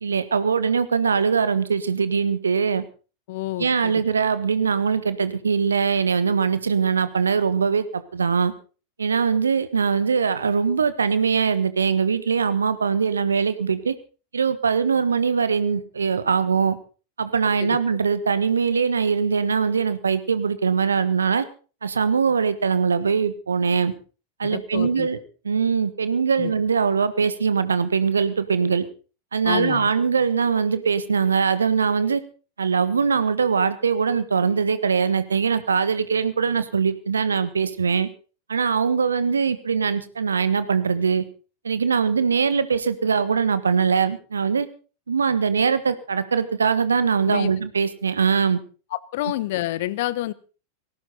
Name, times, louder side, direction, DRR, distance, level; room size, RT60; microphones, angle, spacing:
voice 1, 0.0-2.8 3.6-8.5 9.0-13.9 14.3-16.7 17.2-21.4 21.8-23.9 24.4-25.2 25.4-28.8 29.3-32.2 32.6-38.1 38.5-41.2 41.6-44.6 45.1-48.6, right 6 dB, 70° right, 14 dB, 1.3 m, -22 dB
voice 2, 3.3-4.0 17.6-17.8 24.4-25.1 26.4-26.5 29.4-29.9 47.3-47.5 48.9-50.3, left 15 dB, 50° left, 20 dB, 1.0 m, -28 dB
19.5 x 16.5 x 4.0 m, 0.37 s
figure-of-eight pair, 90°, 0 cm